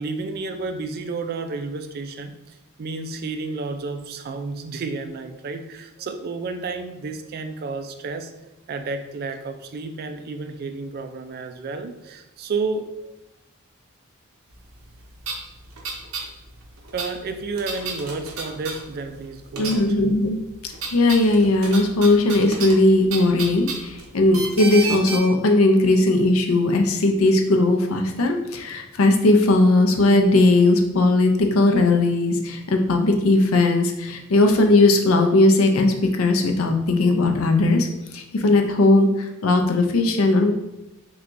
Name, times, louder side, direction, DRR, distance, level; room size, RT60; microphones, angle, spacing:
voice 1, 0.0-8.3 8.7-13.1 16.9-20.0, right 3 dB, 45° right, 7 dB, 0.4 m, -31 dB
sound 1, 14.8-14.9 15.2-16.3 16.5-19.2 19.5-20.1 20.4-25.2, right 4 dB, 80° right, 0.7 m, -32 dB
voice 2, 19.6-20.4 20.9-37.9 38.1-40.5, left 2 dB, 80° left, 4 dB, 0.5 m, -18 dB
5.8 x 2.3 x 2.6 m, 0.93 s
head